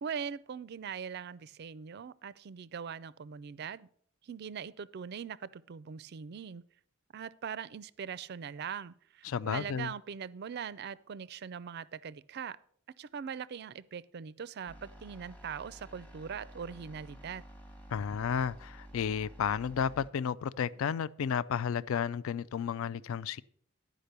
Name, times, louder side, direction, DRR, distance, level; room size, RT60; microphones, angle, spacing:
voice 1, 0.0-3.9 4.2-6.6 7.1-12.6 13.0-17.4, right 7 dB, 50° right, 0.4 m, -41 dB
voice 2, 9.2-9.9 17.9-23.4, left 7 dB, 70° left, 0.3 m, -32 dB
sound 1, 14.7-20.1, equal, 5° left, 1.0 m, -51 dB
12.0 x 5.0 x 6.7 m
head